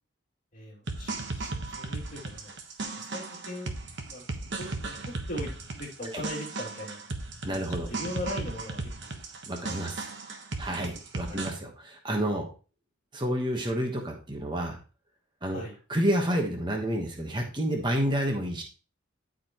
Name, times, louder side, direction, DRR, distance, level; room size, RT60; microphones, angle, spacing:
voice 1, 0.5-2.5 2.9-4.2 4.6-5.0 5.3-5.5 5.7-7.0 7.5-9.2 9.6-9.8 10.0-10.2 11.3-11.5 15.5-15.8, left 1 dB, 40° left, -3 dB, 2.8 m, -40 dB
sound 1, 0.9-11.5, right 3 dB, 55° right, 1.2 m, -36 dB
voice 2, 7.4-7.9 9.5-9.9 10.6-12.5 13.1-14.8 15.4-15.6 15.9-18.6, equal, 20° right, 2 dB, 1.2 m, -29 dB
12.5 x 5.1 x 3.0 m, 0.36 s
head